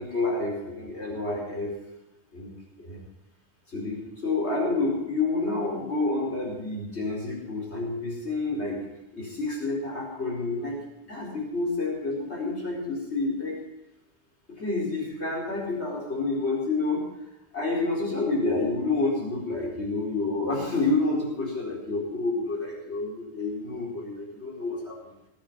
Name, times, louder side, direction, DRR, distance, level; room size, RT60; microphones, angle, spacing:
voice 1, 0.0-1.7 2.3-2.5 2.8-3.0 3.7-8.8 9.1-10.8 11.1-13.6 14.6-17.0 17.5-25.1, left 3 dB, 80° left, -4 dB, 4.9 m, -29 dB
21.0 x 8.6 x 7.3 m, 0.90 s
omnidirectional pair, 1.1 m